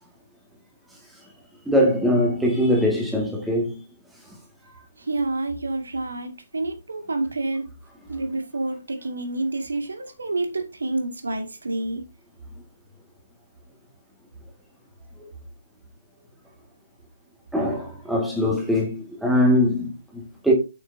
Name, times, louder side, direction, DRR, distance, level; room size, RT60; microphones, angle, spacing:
voice 1, 1.7-3.8 17.5-20.5, equal, ahead, 2.0 m, -22 dB
voice 2, 5.0-7.7 8.1-12.0, right 2 dB, 65° right, 2.1 m, -28 dB
8.3 x 7.2 x 2.8 m
figure-of-eight pair, 135°, 0 cm